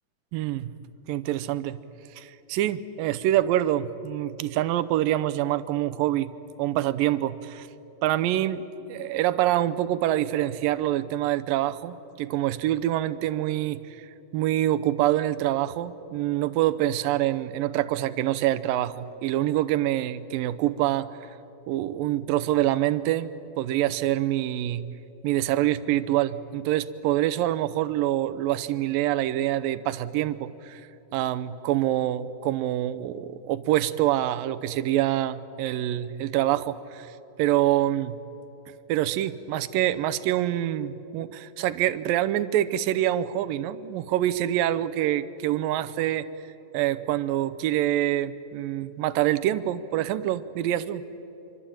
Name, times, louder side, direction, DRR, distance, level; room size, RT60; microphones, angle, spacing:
voice 1, 0.3-0.7 1.1-1.8 2.2-6.3 6.6-7.7 8.0-14.1 14.3-21.1 21.7-23.3 23.6-24.8 25.2-30.8 31.1-37.1 37.4-38.2 38.9-46.3 46.7-51.0, right 13 dB, 80° right, 13 dB, 2.4 m, -26 dB
26.5 x 24.5 x 8.9 m, 2.9 s
omnidirectional pair, 4.1 m